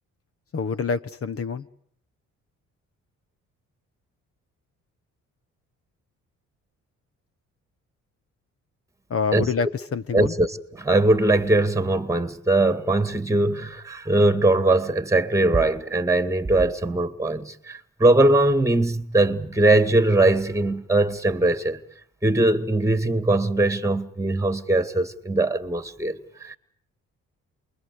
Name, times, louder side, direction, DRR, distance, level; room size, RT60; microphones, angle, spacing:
voice 1, 0.5-1.6 9.1-10.3, left 5 dB, 50° left, 1.4 m, -26 dB
voice 2, 9.3-9.7 10.1-21.8 22.2-26.6, right 2 dB, 10° right, 2.2 m, -21 dB
28.5 x 22.5 x 8.4 m
cardioid pair, 90°, 30 cm